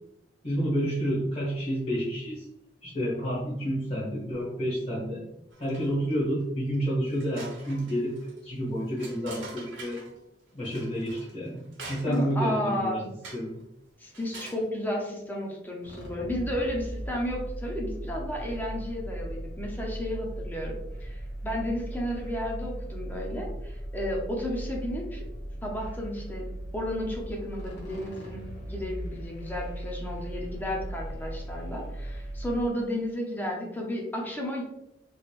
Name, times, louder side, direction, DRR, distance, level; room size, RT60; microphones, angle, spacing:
voice 1, 0.4-2.5 2.8-5.2 5.6-10.0 10.5-13.0 13.3-13.5, equal, 35° left, -9 dB, 1.2 m, -29 dB
metal dolly moving banging around inside, 5.5-6.1 6.6-6.7 7.1-10.2 10.6-12.4 13.2-13.6 14.1-14.7, right 3 dB, 80° right, 1.1 m, -45 dB
voice 2, 12.1-13.0 14.0-25.3 25.6-26.5 26.7-34.6, left 1 dB, 10° left, -1 dB, 0.7 m, -33 dB
sound 1, 15.8-32.7, right 1 dB, 60° left, 1.3 m, -38 dB
3.9 x 3.3 x 2.4 m, 0.84 s
head